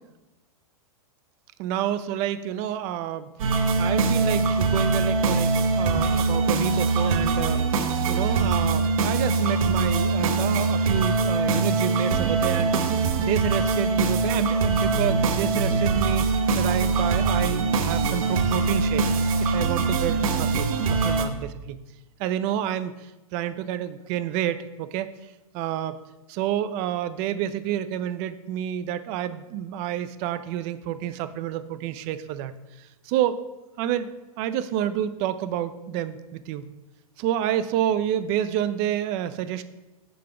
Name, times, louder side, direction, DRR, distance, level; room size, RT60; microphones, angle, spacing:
voice 1, 1.6-3.3 3.8-7.7 8.1-19.1 19.4-21.8 22.2-25.1 25.5-26.0 26.3-32.5 32.8-33.4 33.8-36.7 37.2-39.6, right 11 dB, 35° right, 13 dB, 0.4 m, -29 dB
sound 1, 3.4-21.3, right 4 dB, 65° right, 0.7 m, -23 dB
5.6 x 3.9 x 4.9 m, 1.0 s
hypercardioid pair, 120°, 19 cm